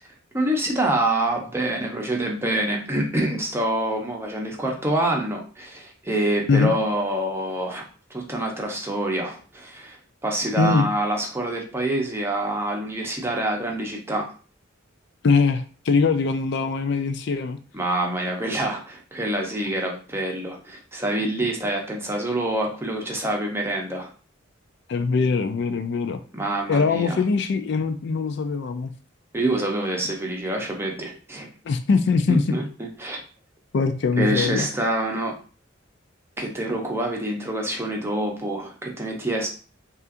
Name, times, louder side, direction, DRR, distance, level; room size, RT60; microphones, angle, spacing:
voice 1, 0.3-7.8 8.1-10.0 10.2-14.3 17.7-24.1 26.3-27.2 29.3-31.5 32.3-33.2 34.2-35.4 36.4-39.5, right 1 dB, 10° right, 0 dB, 0.7 m, -26 dB
voice 2, 10.6-10.9 15.2-17.6 24.9-26.2 26.7-28.9 31.6-32.6 33.7-34.7, left 4 dB, 60° left, 9 dB, 0.4 m, -22 dB
5.5 x 2.5 x 2.5 m, 0.38 s
head